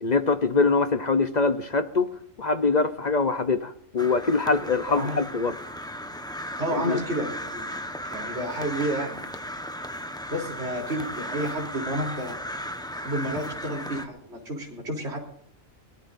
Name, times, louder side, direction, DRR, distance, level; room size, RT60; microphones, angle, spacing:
voice 1, 0.0-2.1 2.4-5.6 6.8-7.0, left 4 dB, 40° left, 0.7 m, -23 dB
Crow, 4.0-14.1, equal, 5° left, 1.0 m, -36 dB
voice 2, 4.9-5.2 6.6-7.6 8.1-9.2 10.3-12.4 13.0-15.2, right 1 dB, 50° right, 3.8 m, -30 dB
23.0 x 19.0 x 2.6 m
omnidirectional pair, 1.4 m